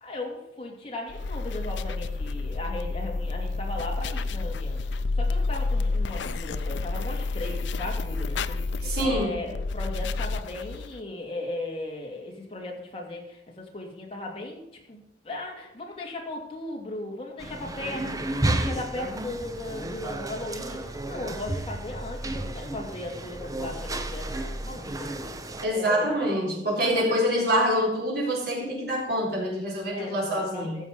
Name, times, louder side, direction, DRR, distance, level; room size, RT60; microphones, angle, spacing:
voice 1, 0.0-25.1 25.7-26.4 26.8-27.2 29.9-30.8, left 2 dB, 30° left, -1 dB, 2.6 m, -37 dB
sound 1, 1.1-11.0, left 3 dB, 80° left, 0.5 m, -30 dB
voice 2, 8.8-9.3 25.6-30.8, equal, 60° right, -2 dB, 4.1 m, -26 dB
sound 2, 17.4-25.7, right 1 dB, 20° right, 0.8 m, -32 dB
13.5 x 7.1 x 5.0 m, 0.84 s
head